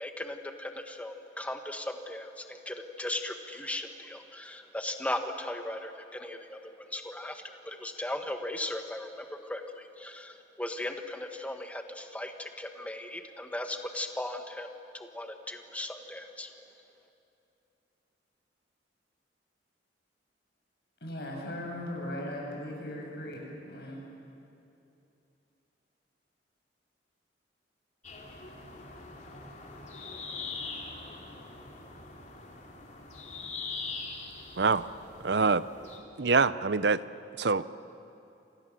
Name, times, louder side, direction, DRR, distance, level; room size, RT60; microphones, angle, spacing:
voice 1, 0.0-16.5, left 1 dB, 10° left, 5 dB, 1.6 m, -38 dB
voice 2, 21.0-24.0, left 1 dB, 60° left, -2 dB, 7.9 m, -38 dB
sound 1, 28.0-36.0, left 4 dB, 40° left, 3.6 m, -42 dB
voice 3, 34.6-34.9 35.2-35.6 36.2-37.0 37.4-37.7, right 4 dB, 65° right, 16 dB, 0.7 m, -25 dB
29.0 x 26.0 x 7.6 m, 2.8 s
head